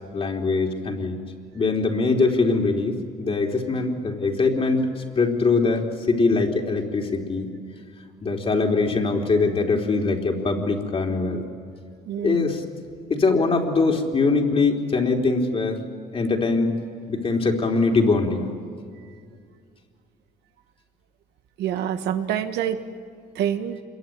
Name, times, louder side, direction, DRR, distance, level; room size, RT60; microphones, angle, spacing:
voice 1, 0.1-1.2 1.5-7.5 8.2-11.4 12.2-12.6 13.1-15.8 16.1-16.8 17.1-18.5, left 3 dB, 35° left, 2 dB, 3.6 m, -22 dB
voice 2, 12.1-12.4 21.6-22.8 23.3-23.8, right 9 dB, 80° right, 8 dB, 1.5 m, -26 dB
26.5 x 22.5 x 9.3 m, 2.2 s
cardioid pair, 110°, 17 cm